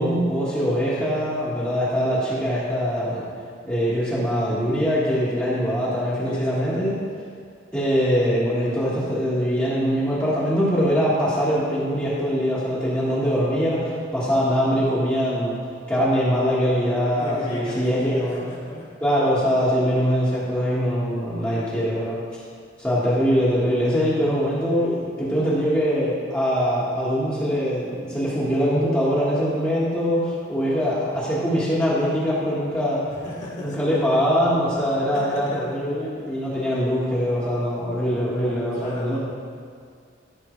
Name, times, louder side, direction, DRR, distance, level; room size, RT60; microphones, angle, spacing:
voice 1, 0.0-3.3 3.6-7.0 7.7-15.6 15.9-18.4 19.0-22.2 22.8-33.0 33.6-39.2, equal, 10° left, -11 dB, 1.5 m, -22 dB
voice 2, 6.2-6.8 17.2-18.9 21.4-21.8 33.1-34.0 34.7-34.8 35.1-35.6 38.7-39.2, left 1 dB, 40° left, -6 dB, 2.0 m, -35 dB
13.5 x 5.9 x 3.2 m, 2.3 s
head